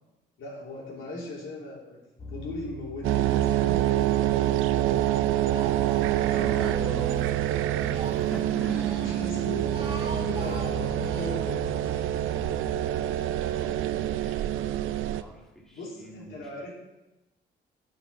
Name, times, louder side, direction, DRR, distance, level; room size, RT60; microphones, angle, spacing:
voice 1, 0.4-2.0 2.3-4.7 6.3-7.1 8.5-12.1 12.8-13.0 15.7-16.7, left 2 dB, 80° left, -4 dB, 3.2 m, -39 dB
sound 1, 2.2-3.9 4.3-8.4 8.9-13.1, left 1 dB, 35° left, 1.2 m, -42 dB
sound 2, 3.0-15.2, right 13 dB, 90° right, 0.5 m, -26 dB
Speech, 3.5-4.2 4.5-7.3 7.7-9.2 9.6-11.3, right 4 dB, 30° right, 2.2 m, -42 dB
voice 2, 6.4-7.5 7.9-9.2 13.4-14.4 15.1-16.4, right 1 dB, ahead, -2 dB, 2.1 m, -41 dB
9.1 x 6.0 x 5.7 m, 0.99 s
cardioid pair, 90°, 20 cm